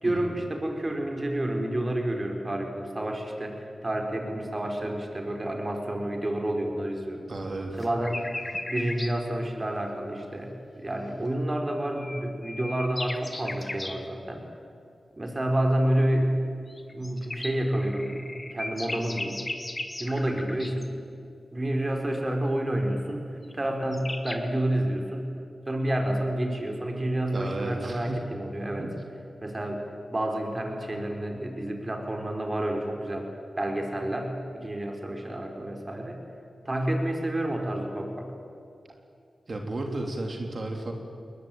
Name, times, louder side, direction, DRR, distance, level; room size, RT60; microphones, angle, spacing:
voice 1, 0.0-7.3 7.8-8.3 8.7-14.4 15.1-16.3 16.9-18.2 18.5-19.4 20.0-20.9 21.5-23.3 23.5-25.3 25.7-28.9 29.4-29.8 30.1-33.3 33.6-36.2 36.6-38.3, right 1 dB, 30° right, 3 dB, 4.7 m, -29 dB
voice 2, 7.3-7.7 27.3-28.2 28.8-29.0 39.5-40.9, right 2 dB, 55° right, 3 dB, 3.2 m, -33 dB
sound 1, 7.8-9.1 11.7-14.0 16.7-20.9 23.5-23.6 23.8-24.4, left 2 dB, 30° left, 2.1 m, -37 dB
21.5 x 20.5 x 9.2 m, 2.4 s
cardioid pair, 50°, 0 cm